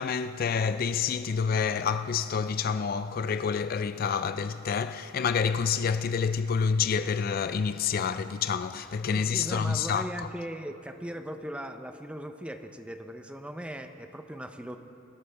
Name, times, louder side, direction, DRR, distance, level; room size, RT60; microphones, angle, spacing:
voice 1, 0.0-10.1, left 6 dB, 50° left, 0.4 m, -28 dB
voice 2, 9.1-14.8, equal, 5° right, 0.5 m, -39 dB
23.0 x 12.5 x 3.3 m
head